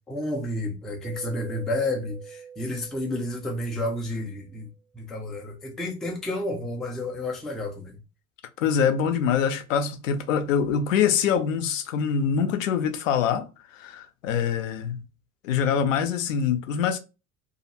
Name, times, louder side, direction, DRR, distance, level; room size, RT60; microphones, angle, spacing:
voice 1, 0.1-4.7 4.9-8.0, left 1 dB, ahead, 0.3 m, -31 dB
Mallet percussion, 1.0-4.5, right 7 dB, 75° right, 0.6 m, -44 dB
voice 2, 8.6-13.5 13.7-15.0 15.4-17.0, left 7 dB, 65° left, 0.6 m, -24 dB
2.5 x 2.4 x 2.7 m
figure-of-eight pair, 65°, 42 cm